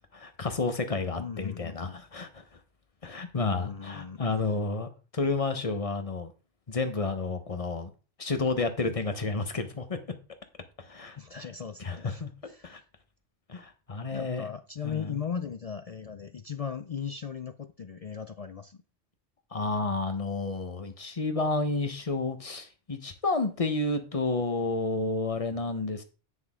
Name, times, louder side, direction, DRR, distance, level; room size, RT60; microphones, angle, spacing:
voice 1, 0.2-2.4 3.0-6.3 6.7-7.9 8.2-10.0 10.8-11.2 11.8-12.3 12.6-12.8 13.5-14.5 14.8-15.2 19.5-26.0, left 3 dB, 30° left, 1.1 m, -30 dB
voice 2, 1.2-2.1 3.4-4.2 11.2-12.8 14.1-18.8, left 7 dB, 55° left, 0.4 m, -38 dB
9.4 x 6.0 x 3.7 m
omnidirectional pair, 1.2 m